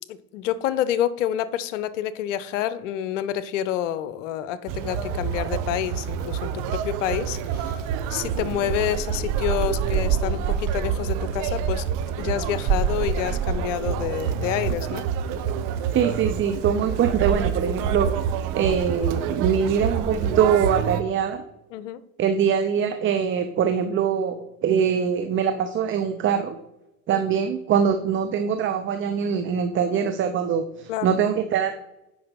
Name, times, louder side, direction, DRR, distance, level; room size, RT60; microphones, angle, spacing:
voice 1, 0.1-7.8 8.1-11.9 12.2-15.0 21.7-22.0 27.1-27.3 30.9-31.1, left 11 dB, 60° left, 0.8 m, -28 dB
Conversation, 4.7-21.0, right 7 dB, 50° right, 1.1 m, -27 dB
voice 2, 15.9-18.1 18.5-21.4 22.2-26.6 27.1-31.7, right 7 dB, 30° right, 0.7 m, -23 dB
8.6 x 5.4 x 5.3 m
figure-of-eight pair, 75°, 41 cm